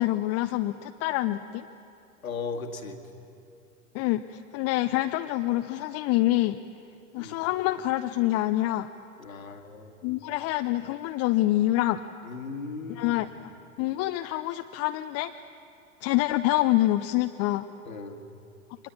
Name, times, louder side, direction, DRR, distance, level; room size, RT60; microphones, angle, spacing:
voice 1, 0.0-1.6 3.9-6.6 7.1-8.9 10.0-12.0 12.9-13.3 13.8-15.3 16.0-17.7, left 16 dB, 35° left, 8 dB, 0.7 m, -26 dB
voice 2, 2.2-3.0 7.2-7.4 9.2-10.0 12.2-13.2 17.9-18.2, left 4 dB, 80° left, 4 dB, 2.1 m, -37 dB
24.0 x 20.5 x 8.7 m, 2.6 s
figure-of-eight pair, 90°, 41 cm